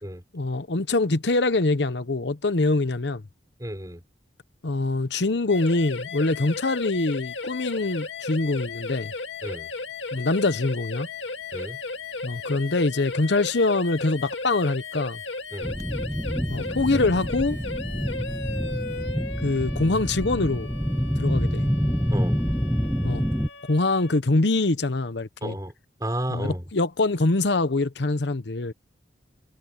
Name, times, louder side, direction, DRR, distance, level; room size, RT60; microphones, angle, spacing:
voice 1, 0.3-3.2 4.6-9.1 10.1-11.1 12.2-15.2 16.5-17.6 19.4-20.7 21.2-21.7 23.0-23.2 23.7-25.5 26.3-28.7, left 2 dB, 70° left, 0.9 m, -24 dB
voice 2, 3.6-4.0 9.4-9.7 11.5-11.8 15.5-15.7 22.1-22.4 25.4-25.7 26.0-26.6, right 1 dB, 20° right, 4.2 m, -32 dB
sound 1, 5.5-24.2, left 3 dB, 90° left, 2.1 m, -36 dB
sound 2, 15.6-23.5, equal, 5° left, 1.7 m, -27 dB
head